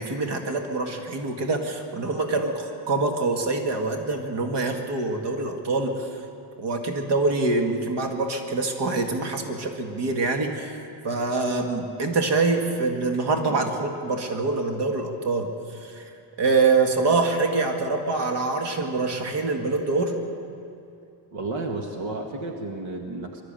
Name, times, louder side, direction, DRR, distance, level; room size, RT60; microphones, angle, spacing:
voice 1, 0.0-6.1 6.6-10.8 11.0-15.5 15.8-16.1 16.4-20.2, right 3 dB, 60° right, 4 dB, 2.1 m, -25 dB
voice 2, 21.3-23.4, right 2 dB, 75° right, 3 dB, 1.9 m, -32 dB
22.5 x 13.0 x 9.0 m, 2.5 s
cardioid pair, 150°, 48 cm